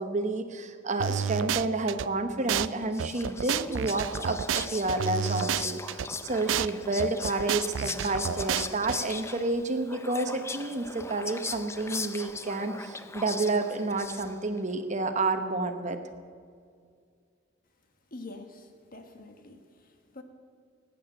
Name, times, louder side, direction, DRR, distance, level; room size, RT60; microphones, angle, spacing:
voice 1, 0.0-16.0, right 2 dB, 40° right, 7 dB, 1.0 m, -30 dB
sound 1, 1.0-2.1 2.5-2.7 3.0-6.1 6.5-6.7 7.0-9.0, right 8 dB, 85° right, 0.4 m, -30 dB
Whispering, 2.6-14.6, left 4 dB, 15° left, 0.6 m, -39 dB
voice 2, 18.1-20.2, left 2 dB, 50° left, 6 dB, 1.6 m, -46 dB
19.0 x 8.6 x 7.7 m, 2.2 s
head